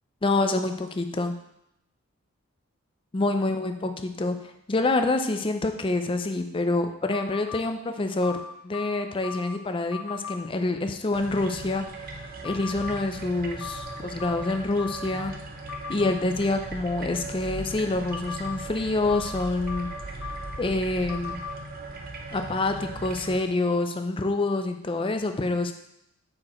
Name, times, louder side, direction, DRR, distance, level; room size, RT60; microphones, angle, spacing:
voice 1, 0.2-1.4 3.1-15.3 15.9-20.3 20.6-21.4 22.3-25.7, left 2 dB, 25° left, 7 dB, 0.5 m, -27 dB
sound 1, 7.1-7.6 8.2-9.6 9.9-10.4 12.4-13.0 13.6-15.2 15.7-16.1 18.1-18.6 19.1-20.6 21.1-21.5, left 6 dB, 80° left, 0.6 m, -38 dB
sound 2, 11.1-23.4, right 3 dB, 45° right, 0.7 m, -38 dB
6.5 x 4.6 x 4.3 m, 0.79 s
head